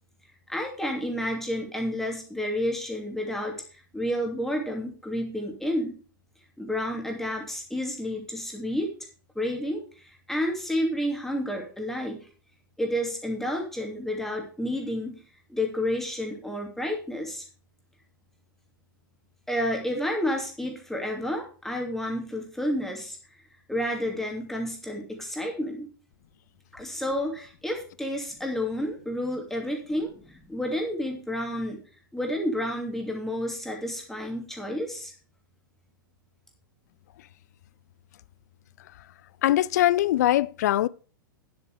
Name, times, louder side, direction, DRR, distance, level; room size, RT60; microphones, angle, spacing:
voice 1, 0.5-6.0 6.6-8.9 9.3-12.3 12.8-15.2 15.5-17.4 19.5-23.2 23.7-25.9 26.7-31.8 32.1-35.1, left 1 dB, 5° left, 2.8 m, -30 dB
voice 2, 39.4-40.9, left 14 dB, 50° left, 0.4 m, -22 dB
10.0 x 7.9 x 4.9 m
figure-of-eight pair, 105°, 11 cm